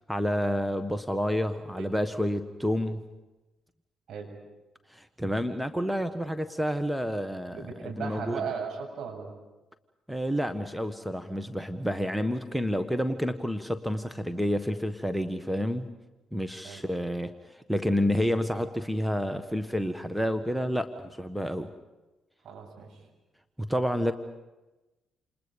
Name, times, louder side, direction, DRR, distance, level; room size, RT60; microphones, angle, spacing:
voice 1, 0.1-3.0 4.9-7.6 8.0-8.4 10.1-15.9 16.3-21.7 23.6-24.1, equal, ahead, 9 dB, 1.5 m, -29 dB
voice 2, 7.5-9.3 16.6-16.8 22.4-23.1, right 6 dB, 60° right, 1 dB, 7.8 m, -37 dB
29.0 x 28.5 x 5.4 m, 1.1 s
hypercardioid pair, 45°, 0 cm